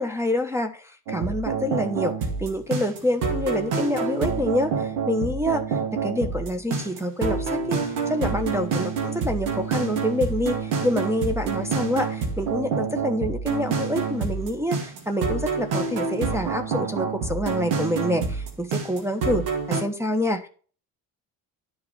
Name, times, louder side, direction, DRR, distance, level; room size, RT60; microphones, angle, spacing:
voice 1, 0.0-2.1 2.4-20.5, left 1 dB, 5° right, 3 dB, 1.1 m, -27 dB
sound 1, 1.1-19.8, right 5 dB, 80° right, 2.2 m, -27 dB
10.5 x 4.7 x 5.7 m, 0.40 s
hypercardioid pair, 60°, 48 cm